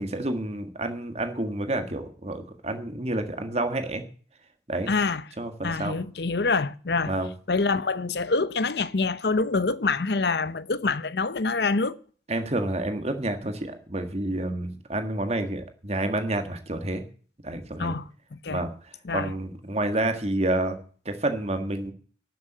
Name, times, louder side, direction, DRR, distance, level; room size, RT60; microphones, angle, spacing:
voice 1, 0.0-4.0 4.7-4.9 5.4-5.9 7.1-7.3 12.3-17.0 17.4-17.9 18.5-18.7 19.1-20.8 21.0-21.9, right 1 dB, 35° right, 1.7 m, -29 dB
voice 2, 4.9-5.2 5.6-7.1 7.5-12.0 17.8-18.0 18.3-18.6 19.0-19.3, left 4 dB, 60° left, 0.7 m, -26 dB
12.0 x 7.3 x 8.1 m
head